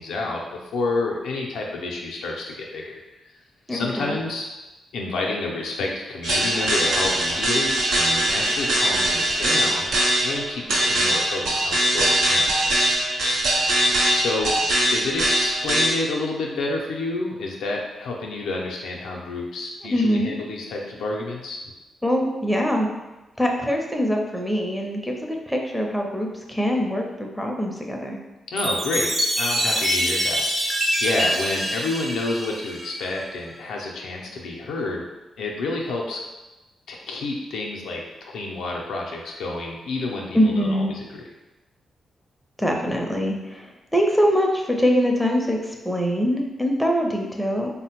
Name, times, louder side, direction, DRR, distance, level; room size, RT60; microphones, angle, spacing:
voice 1, 0.0-2.8 3.7-4.5 4.9-9.9 10.2-12.5 14.1-14.6 14.9-21.6 28.5-35.0 35.4-36.2 36.9-41.2, left 2 dB, 85° left, -1 dB, 0.4 m, -29 dB
voice 2, 3.7-4.1 19.8-20.3 22.0-22.9 23.4-28.2 40.3-40.9 42.6-47.7, equal, 5° left, 1 dB, 0.6 m, -23 dB
sound 1, 6.2-15.9, right 1 dB, 80° right, 0.7 m, -21 dB
Chime, 28.6-33.2, equal, 30° right, 0.8 m, -25 dB
3.3 x 2.1 x 2.9 m, 1.1 s
cardioid pair, 60°, 0 cm